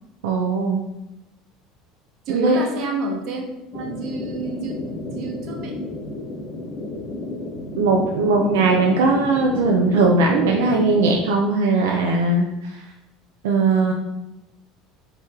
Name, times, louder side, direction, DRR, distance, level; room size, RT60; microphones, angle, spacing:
voice 1, 0.2-0.8 2.3-2.6 7.8-12.5 13.4-13.9, right 3 dB, 85° right, 1 dB, 0.4 m, -19 dB
voice 2, 2.3-3.4 3.7-4.8 5.1-5.7, right 3 dB, 60° right, 2 dB, 0.9 m, -28 dB
sound 1, 3.7-11.1, left 2 dB, 30° left, 1.1 m, -32 dB
4.6 x 2.9 x 3.5 m, 0.94 s
supercardioid pair, 90°, 0 cm